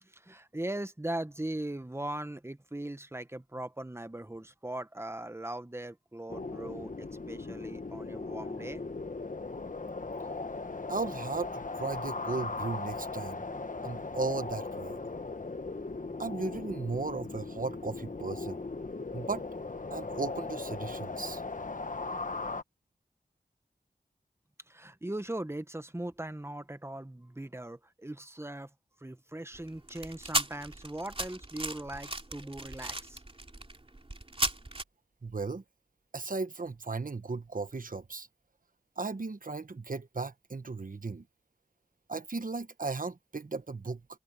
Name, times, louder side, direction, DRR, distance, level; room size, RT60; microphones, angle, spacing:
voice 1, 0.0-8.8 24.7-28.7 29.0-33.2, right 1 dB, 15° right, 1.2 m, -39 dB
sound 1, 6.3-22.6, left 3 dB, 50° left, 1.2 m, -38 dB
voice 2, 10.9-13.4 13.8-15.0 16.2-18.6 19.1-19.4 19.9-21.4 35.2-35.6 36.1-38.3 39.0-41.3 42.1-44.0, right 3 dB, 55° right, 1.2 m, -36 dB
sound 2, 29.5-34.8, right 2 dB, 35° right, 2.9 m, -36 dB
wide cardioid pair, 45°, 17 cm